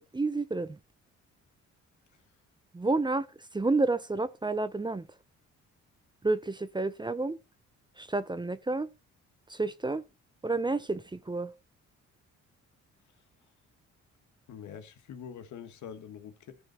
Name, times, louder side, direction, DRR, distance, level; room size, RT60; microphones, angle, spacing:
voice 1, 0.1-0.8 2.7-3.3 3.5-5.1 6.2-7.4 8.0-8.9 9.5-10.0 10.4-11.5, right 3 dB, 15° right, 0.7 m, -30 dB
voice 2, 14.5-16.6, left 8 dB, 75° left, 1.7 m, -45 dB
14.0 x 5.4 x 4.4 m
cardioid pair, 90°, 30 cm